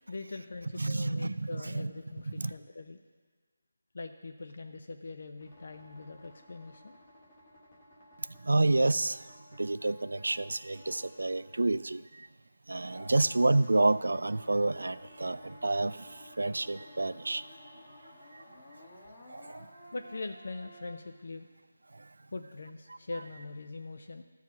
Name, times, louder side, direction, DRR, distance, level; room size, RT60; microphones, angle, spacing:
voice 1, 0.1-3.0 3.9-7.0 19.9-21.5 22.3-24.2, left 3 dB, 50° left, 7 dB, 0.5 m, -42 dB
voice 2, 0.8-1.9 2.4-2.5 8.4-12.3 12.7-17.5 18.3-18.4 19.3-19.7 21.9-22.1, right 2 dB, 80° right, 15 dB, 0.3 m, -29 dB
sound 1, 5.4-12.3 12.8-20.9, left 1 dB, 20° left, 1.2 m, -54 dB
13.5 x 4.8 x 5.8 m, 1.5 s
figure-of-eight pair, 175°, 0 cm